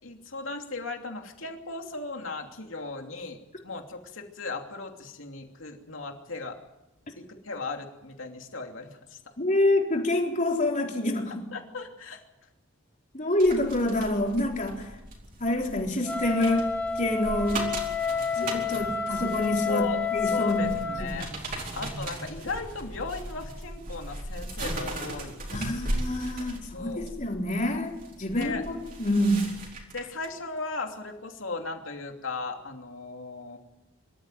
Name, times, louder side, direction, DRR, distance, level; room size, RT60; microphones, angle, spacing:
voice 1, 0.0-6.6 7.4-9.2 11.5-12.2 19.7-21.3 21.7-25.8 26.7-27.2 28.3-28.6 29.9-33.6, left 3 dB, 70° left, 3 dB, 2.9 m, -37 dB
voice 2, 9.4-11.5 13.1-15.0 15.4-17.7 18.3-20.7 21.0-21.4 22.0-22.2 25.5-29.5, left 1 dB, 40° left, 0 dB, 4.0 m, -27 dB
sound 1, 13.4-30.3 30.7-30.9, right 1 dB, 45° right, 4.5 m, -38 dB
Wind instrument woodwind instrument, 16.0-21.1, left 6 dB, 10° left, 1.9 m, -30 dB
25.0 x 13.5 x 9.3 m, 0.99 s
head